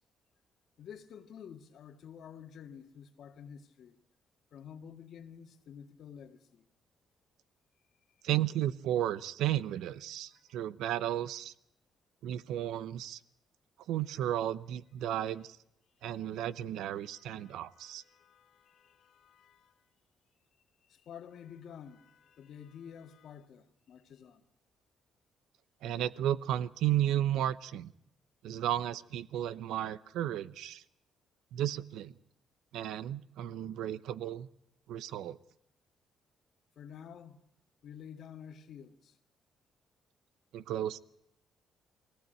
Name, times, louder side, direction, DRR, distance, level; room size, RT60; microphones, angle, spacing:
voice 1, 0.8-4.0 4.5-6.7 10.3-10.6 15.0-15.1 17.0-19.8 20.9-24.4 36.8-37.4 37.8-39.2, left 8 dB, 70° left, 1.8 m, -50 dB
voice 2, 8.2-11.5 12.2-13.2 13.9-15.6 16.0-18.0 25.8-27.9 28.4-30.8 31.5-32.2 32.7-34.5 34.9-35.4 40.5-41.0, right 12 dB, 85° right, 0.7 m, -33 dB
20.5 x 18.0 x 9.0 m
cardioid pair, 90°, 0 cm